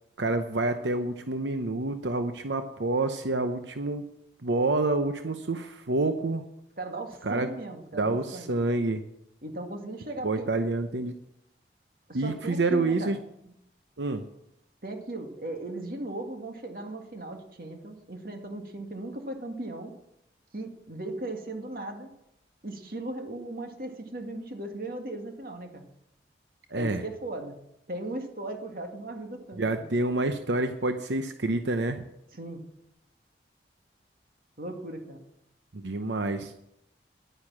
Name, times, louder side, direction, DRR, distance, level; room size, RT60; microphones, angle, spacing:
voice 1, 0.2-4.1 4.4-6.4 7.2-7.5 7.9-9.0 10.2-11.1 12.1-13.2 14.0-14.2 26.7-27.0 29.6-32.0 35.7-36.5, right 2 dB, 90° right, 8 dB, 0.8 m, -28 dB
voice 2, 6.8-8.5 9.4-10.5 12.1-13.5 14.8-19.9 20.5-22.1 22.6-25.9 26.7-27.6 27.9-29.8 32.3-32.6 34.6-35.2, right 2 dB, 55° right, 4 dB, 2.1 m, -37 dB
11.5 x 9.8 x 7.5 m, 0.79 s
head